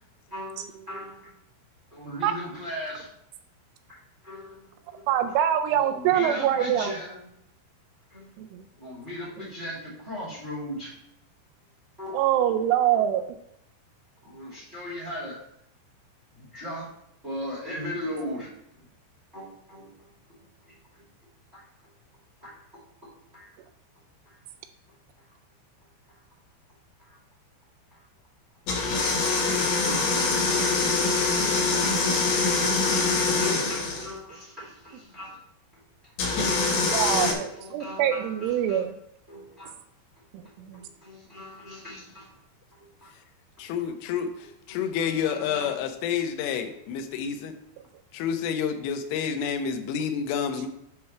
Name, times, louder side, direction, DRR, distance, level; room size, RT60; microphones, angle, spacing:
voice 1, 0.3-1.3 1.9-3.1 4.2-5.1 5.7-7.3 8.1-8.3 8.7-10.9 12.0-12.2 12.9-13.1 14.2-15.4 16.3-16.9 17.2-18.5 19.3-20.1 20.6-20.8 21.5-21.6 22.4-22.5 23.3-23.6 24.2-24.4 26.1-26.2 27.0-27.2 27.9-28.1 32.5-35.4 35.7-35.8 37.5-38.8 39.3-39.7 40.7-42.3 42.8-43.1 44.7-45.7, left 1 dB, 30° right, -6 dB, 1.2 m, -39 dB
voice 2, 5.1-6.9 8.4-8.6 12.1-13.2 29.9-30.0 36.6-38.9 40.6-40.8, right 10 dB, 85° right, 7 dB, 2.9 m, -24 dB
sound 1, 28.7-34.1 36.2-37.3, left 4 dB, 65° left, 2.8 m, -24 dB
voice 3, 43.6-47.5 48.1-50.7, left 7 dB, 85° left, 7 dB, 3.2 m, -29 dB
9.4 x 3.2 x 5.6 m, 0.75 s
omnidirectional pair, 5.6 m